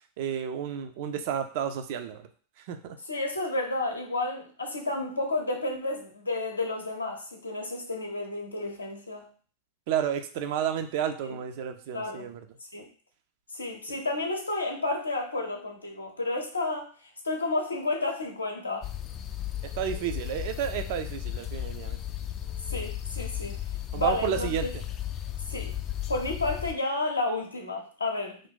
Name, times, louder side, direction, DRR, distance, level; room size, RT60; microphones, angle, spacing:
voice 1, 0.2-2.3 2.7-3.0 9.9-12.4 19.8-22.0 23.9-24.7, right 9 dB, 50° right, 7 dB, 0.4 m, -31 dB
voice 2, 3.1-9.3 11.2-11.4 11.9-12.3 12.7-12.9 13.5-16.9 17.2-18.9 22.7-23.6 23.9-24.7 25.5-25.7 26.1-28.4, left 2 dB, 80° left, 2 dB, 0.6 m, -31 dB
sound 1, 18.8-26.7, left 11 dB, 30° left, 0.3 m, -35 dB
2.5 x 2.3 x 3.6 m, 0.41 s
figure-of-eight pair, 90°, 0 cm